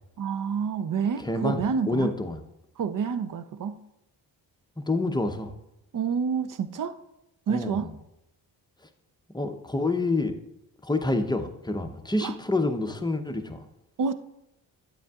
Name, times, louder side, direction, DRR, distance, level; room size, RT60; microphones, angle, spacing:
voice 1, 0.2-2.1 2.8-3.9 5.9-7.0 7.5-8.0 12.2-12.3 14.0-14.1, right 6 dB, 40° right, 0.6 m, -28 dB
voice 2, 1.2-1.6 1.9-2.4 4.8-5.5 7.5-7.8 9.3-10.3 10.8-13.6, left 2 dB, 10° left, 0.7 m, -27 dB
9.1 x 7.7 x 2.4 m
supercardioid pair, 50°, 48 cm